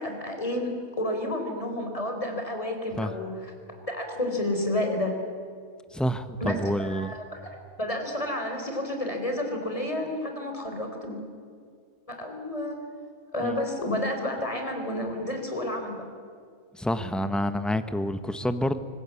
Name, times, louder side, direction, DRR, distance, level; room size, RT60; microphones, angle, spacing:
voice 1, 0.0-3.5 3.9-5.1 6.4-11.2 12.1-12.8 13.3-16.0, left 1 dB, 25° left, 3 dB, 3.9 m, -30 dB
voice 2, 5.9-7.1 13.4-13.6 16.7-18.8, equal, ahead, 11 dB, 0.7 m, -28 dB
25.0 x 20.0 x 8.4 m, 2.2 s
omnidirectional pair, 1.5 m